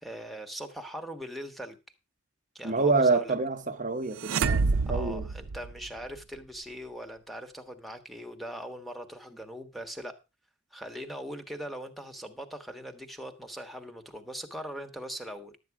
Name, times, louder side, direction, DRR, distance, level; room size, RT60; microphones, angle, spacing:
voice 1, 0.0-1.8 2.5-3.4 4.9-10.1 10.7-15.6, equal, ahead, 1.4 m, -41 dB
voice 2, 2.6-5.2, right 3 dB, 40° right, 1.0 m, -27 dB
sound 1, 4.2-6.2, right 4 dB, 80° right, 0.6 m, -28 dB
12.0 x 8.5 x 4.7 m
head